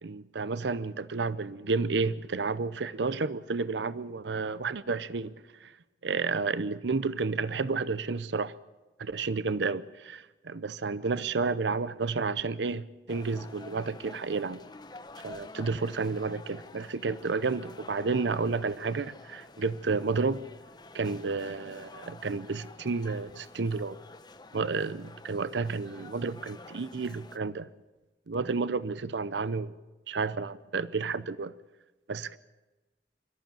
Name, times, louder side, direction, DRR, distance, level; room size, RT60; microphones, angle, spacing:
voice 1, 0.0-5.3 6.0-8.5 9.0-14.6 15.2-20.4 20.9-24.0 24.5-27.7 28.3-29.7 30.1-31.5 32.1-32.4, right 4 dB, 90° right, 17 dB, 0.7 m, -31 dB
sound 1, 13.1-27.4, left 2 dB, 25° left, 0.9 m, -49 dB
24.0 x 14.0 x 9.0 m, 1.1 s
head